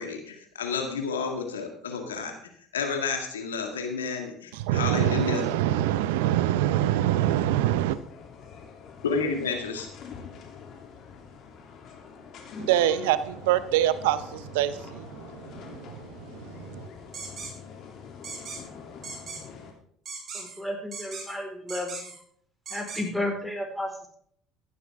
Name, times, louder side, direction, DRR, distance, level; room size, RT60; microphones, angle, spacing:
voice 1, 0.0-2.4 2.7-5.4 9.0-9.9, left 5 dB, 85° left, 4 dB, 2.0 m, -30 dB
voice 2, 4.5-8.0 12.6-16.9, right 12 dB, 75° right, 14 dB, 0.7 m, -25 dB
sound 1, 7.9-19.7, left 6 dB, 55° left, 3.0 m, -45 dB
sound 2, 17.1-17.5 18.2-18.6 19.0-19.4 20.1-20.6 20.9-21.3 21.7-22.2 22.7-23.0, right 4 dB, 40° right, 5.8 m, -38 dB
voice 3, 20.3-22.1 22.7-24.1, left 1 dB, 5° left, 2 dB, 4.4 m, -32 dB
15.5 x 11.5 x 3.6 m, 0.64 s
hypercardioid pair, 65°, 0 cm